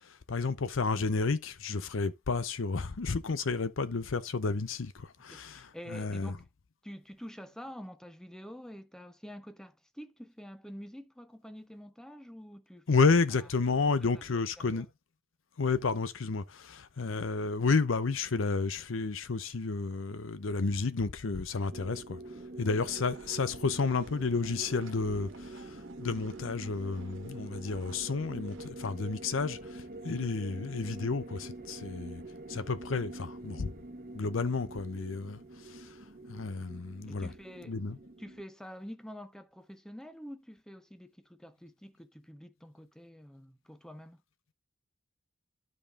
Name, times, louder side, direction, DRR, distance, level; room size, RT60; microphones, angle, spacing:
voice 1, 0.0-6.3 12.9-14.9 15.6-22.2 22.6-32.2 32.5-33.7 34.1-35.9 36.3-37.3 37.6-38.0, left 4 dB, 75° left, 0.7 m, -31 dB
voice 2, 5.3-6.5 6.8-13.0 13.4-13.8 14.1-14.2 14.6-14.8 37.1-37.8 38.2-44.2, equal, 5° left, 0.7 m, -47 dB
sound 1, 21.7-38.4, right 2 dB, 45° right, 1.0 m, -45 dB
sound 2, 22.8-28.7, right 3 dB, 75° right, 1.5 m, -54 dB
12.0 x 5.3 x 2.5 m
head